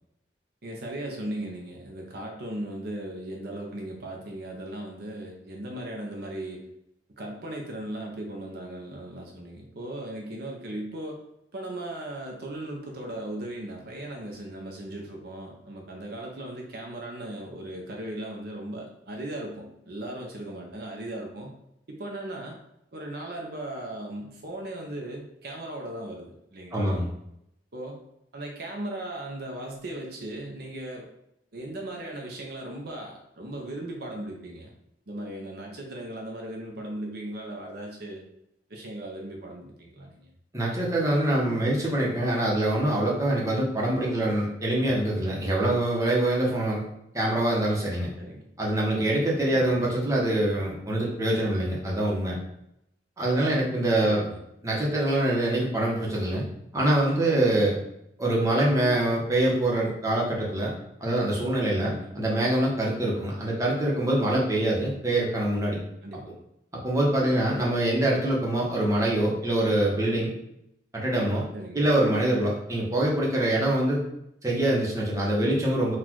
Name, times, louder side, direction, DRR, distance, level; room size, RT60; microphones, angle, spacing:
voice 1, 0.6-6.7 7.2-11.2 11.5-21.5 21.9-22.6 22.9-27.0 27.7-28.0 28.3-31.1 31.5-34.7 35.1-38.2 38.7-40.3 48.2-48.5 49.5-49.8 54.0-54.4 61.8-62.1 66.0-66.3 71.5-71.9, right 1 dB, 60° right, 0 dB, 0.7 m, -37 dB
voice 2, 26.7-27.0 40.5-46.8 47.1-48.1 48.6-52.4 53.2-54.2 54.6-56.4 56.7-57.7 58.2-60.7 61.0-65.8 66.8-70.3 70.9-71.4 71.7-74.0 74.4-75.9, right 1 dB, 20° right, -4 dB, 1.0 m, -24 dB
4.2 x 2.5 x 4.5 m, 0.80 s
head